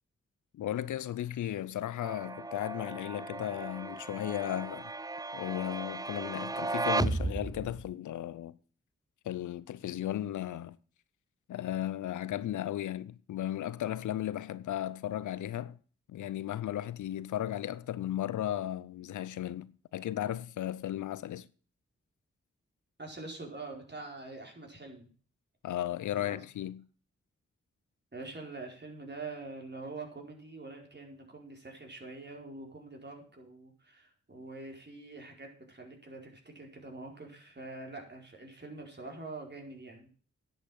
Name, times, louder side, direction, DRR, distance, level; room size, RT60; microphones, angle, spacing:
voice 1, 0.5-4.9 5.3-8.6 9.2-10.8 11.5-15.8 16.1-21.5 25.6-26.8, left 12 dB, 90° left, 0.6 m, -35 dB
sound 1, 2.0-7.9, right 2 dB, 15° right, 0.5 m, -35 dB
voice 2, 23.0-25.1 26.1-26.4 28.1-40.1, right 3 dB, 35° right, 4.7 m, -45 dB
10.5 x 8.0 x 7.6 m
supercardioid pair, 40°, 29 cm